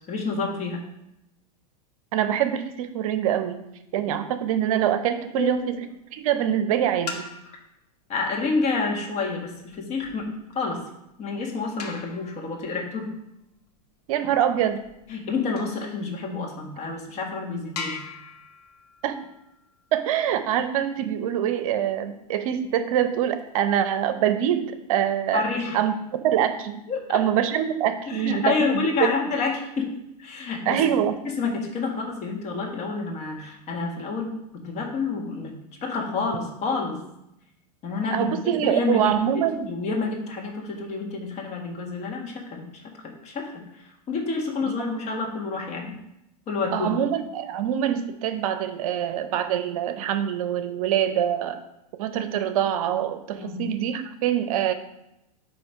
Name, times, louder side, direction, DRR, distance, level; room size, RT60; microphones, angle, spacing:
voice 1, 0.1-0.8 5.3-5.7 8.1-10.8 11.2-13.1 15.1-18.3 25.3-25.8 26.9-27.2 28.1-29.9 30.2-30.8 31.2-37.0 37.8-42.9 43.2-45.9 46.5-47.0 53.4-53.7, left 4 dB, 35° left, 1 dB, 1.6 m, -29 dB
voice 2, 2.1-3.6 3.9-5.7 6.1-7.3 14.1-14.8 19.0-19.3 19.9-25.4 25.7-25.9 26.2-26.8 27.1-29.1 30.7-31.2 38.1-39.7 44.7-44.8 46.7-51.6 52.0-54.7, right 10 dB, 60° right, 10 dB, 0.7 m, -24 dB
sound 1, 5.5-6.0 6.9-7.8 9.4-15.9 16.5-16.6 17.1-17.2 17.8-20.4 22.5-23.5, left 5 dB, 80° left, 1.2 m, -42 dB
8.7 x 3.1 x 4.9 m, 0.84 s
hypercardioid pair, 110°, 20 cm